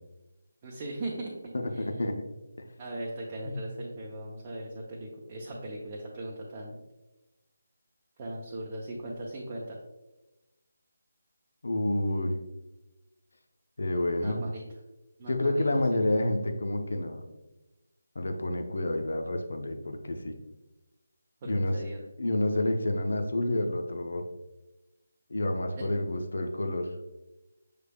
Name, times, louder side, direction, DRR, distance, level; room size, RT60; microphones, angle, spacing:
voice 1, 0.6-2.1 2.8-6.8 8.2-9.8 14.2-14.6 15.2-15.6 15.9-16.0 21.4-22.0, right 1 dB, 25° right, -4 dB, 0.6 m, -39 dB
voice 2, 1.5-2.1 3.4-3.6 11.6-12.4 13.8-14.4 15.3-17.3 18.2-20.3 21.4-21.8 22.2-24.2 25.3-26.9, left 1 dB, 65° left, 5 dB, 0.6 m, -29 dB
6.6 x 3.3 x 2.3 m, 1.0 s
figure-of-eight pair, 155°, 0 cm